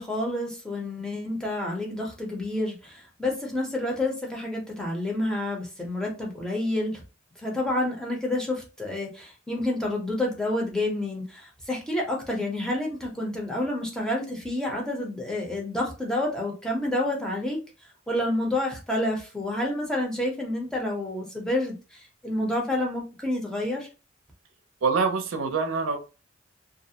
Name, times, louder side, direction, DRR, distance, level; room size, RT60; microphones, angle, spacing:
voice 1, 0.0-7.0 7.4-17.6 18.1-23.9, left 1 dB, 5° left, 0.6 m, -29 dB
voice 2, 24.8-26.0, right 4 dB, 85° right, 0.5 m, -25 dB
2.4 x 2.0 x 2.7 m
head